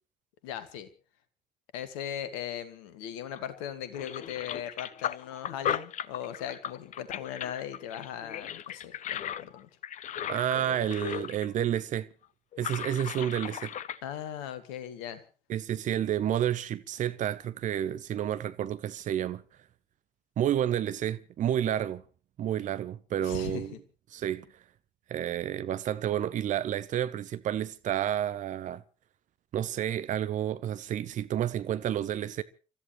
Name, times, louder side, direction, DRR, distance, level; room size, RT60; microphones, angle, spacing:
voice 1, 0.4-0.9 1.7-9.7 10.5-11.2 14.0-15.2 23.2-23.8, left 10 dB, 65° left, 1.8 m, -39 dB
sound 1, 3.4-3.6 3.9-11.5 11.8-11.9 12.5-14.0, left 10 dB, 45° left, 0.7 m, -37 dB
voice 2, 10.3-12.1 12.6-13.7 15.5-19.4 20.4-22.0 22.4-23.7 24.1-24.4 25.1-28.8 29.5-32.4, right 10 dB, 45° right, 0.9 m, -30 dB
30.0 x 13.5 x 3.1 m
figure-of-eight pair, 50°, 17 cm